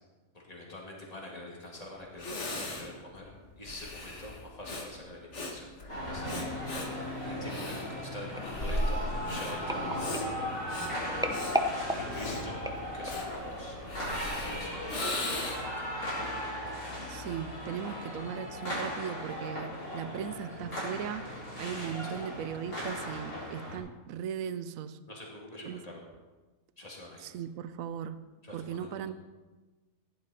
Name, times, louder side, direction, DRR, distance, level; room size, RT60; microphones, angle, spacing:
voice 1, 0.3-5.7 6.0-10.2 10.7-11.7 11.9-12.6 12.9-13.8 14.1-16.2 22.0-22.2 25.1-26.0 26.8-27.3 28.4-29.1, left 1 dB, 25° left, -3 dB, 2.9 m, -46 dB
Breathing, 1.7-1.8 2.2-15.8, left 1 dB, 55° left, 1.9 m, -38 dB
sound 1, 5.9-23.8, equal, 85° left, 4.6 m, -37 dB
sound 2, 8.4-13.4 14.0-14.2 14.5-14.6, equal, 5° right, 0.4 m, -36 dB
voice 2, 17.1-25.0 25.6-25.8 27.2-28.3 28.5-29.1, right 8 dB, 75° right, 13 dB, 1.1 m, -38 dB
15.5 x 11.0 x 4.4 m, 1.2 s
omnidirectional pair, 1.5 m